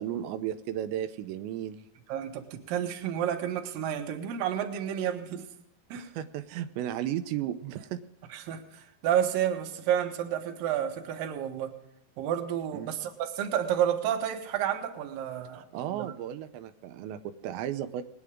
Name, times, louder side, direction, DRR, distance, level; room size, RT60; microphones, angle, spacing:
voice 1, 0.0-1.8 5.9-8.0 12.7-12.9 15.5-18.0, right 11 dB, 85° right, 8 dB, 3.0 m, -34 dB
voice 2, 2.1-5.5 5.9-6.1 8.3-11.7 12.2-16.1, right 10 dB, 65° right, 4 dB, 2.7 m, -30 dB
21.0 x 9.8 x 3.6 m, 0.85 s
omnidirectional pair, 5.0 m